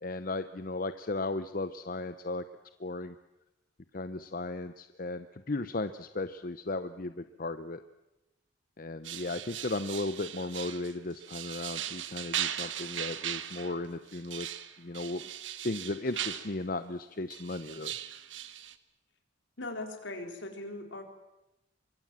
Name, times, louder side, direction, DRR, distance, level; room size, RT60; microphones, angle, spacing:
voice 1, 0.0-2.4 2.8-3.1 3.9-7.8 8.8-14.5 14.8-15.2 15.6-17.9, left 2 dB, 45° left, 11 dB, 0.8 m, -35 dB
sound 1, 9.0-16.5 17.3-18.7, right 11 dB, 70° right, 1.3 m, -38 dB
voice 2, 19.6-21.0, left 2 dB, 70° left, 4 dB, 4.0 m, -39 dB
24.5 x 24.0 x 7.5 m, 0.94 s
head